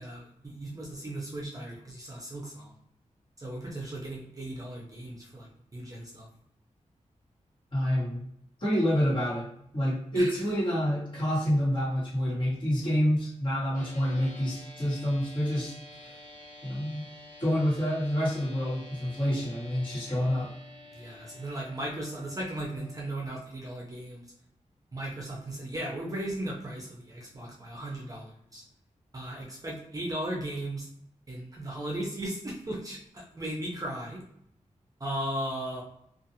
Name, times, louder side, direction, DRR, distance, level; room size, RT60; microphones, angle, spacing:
voice 1, 0.0-2.7 3.4-6.3 10.1-10.4 20.9-24.2 24.9-28.6 29.1-30.9 31.3-34.2 35.0-35.8, right 1 dB, 25° right, -3 dB, 0.6 m, -36 dB
voice 2, 7.7-8.2 8.6-9.5 9.7-16.2 16.6-17.0 17.4-20.5, equal, 40° left, -8 dB, 1.4 m, -28 dB
sound 1, 13.7-23.1, left 1 dB, 70° left, 1.0 m, -49 dB
2.4 x 2.4 x 2.7 m, 0.72 s
wide cardioid pair, 120°, 13 cm